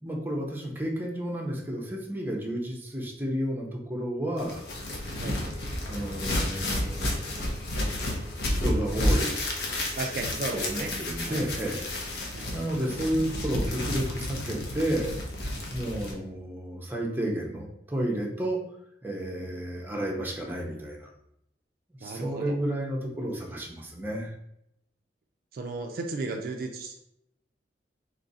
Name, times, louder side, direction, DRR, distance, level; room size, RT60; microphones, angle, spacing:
voice 1, 0.0-4.6 5.8-7.2 8.6-9.4 10.5-11.9 12.5-15.1 15.7-18.6 19.0-21.1 22.0-24.3, right 1 dB, 10° right, -2 dB, 0.6 m, -31 dB
sound 1, 4.4-16.1, left 1 dB, 60° left, 0.7 m, -31 dB
sound 2, 4.6-12.2, equal, 80° left, 1.5 m, -44 dB
voice 2, 10.0-10.9 11.2-11.5 12.3-12.5 15.8-15.9 22.0-22.6 25.5-27.0, right 3 dB, 55° right, 3 dB, 0.3 m, -35 dB
3.1 x 2.4 x 3.9 m, 0.79 s
head